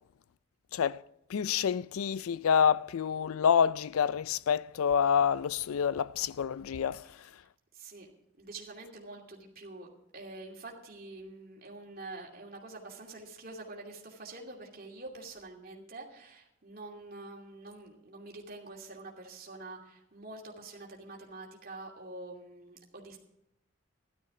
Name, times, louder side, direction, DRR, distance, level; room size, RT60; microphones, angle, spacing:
voice 1, 0.7-1.0 1.3-7.1, left 7 dB, 85° left, 0.4 m, -27 dB
voice 2, 7.7-8.1 8.4-23.2, right 2 dB, 45° right, 2.7 m, -46 dB
13.5 x 12.0 x 4.9 m
head